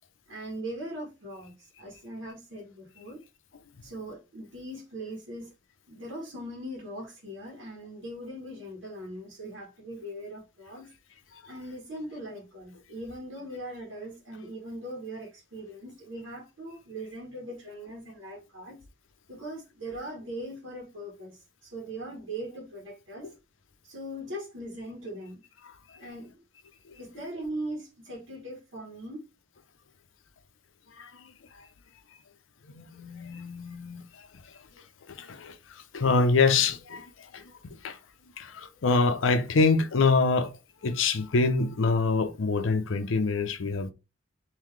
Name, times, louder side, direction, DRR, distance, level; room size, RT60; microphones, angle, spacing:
voice 1, 0.3-3.2 3.8-5.5 5.9-10.9 11.5-18.8 19.3-23.3 23.8-25.4 26.0-26.4 27.0-29.2, right 1 dB, 70° right, 1.2 m, -40 dB
voice 2, 31.0-31.7 32.6-34.5 35.1-38.0 38.4-40.5 40.8-43.9, left 4 dB, 75° left, 0.6 m, -26 dB
3.8 x 2.6 x 3.1 m
head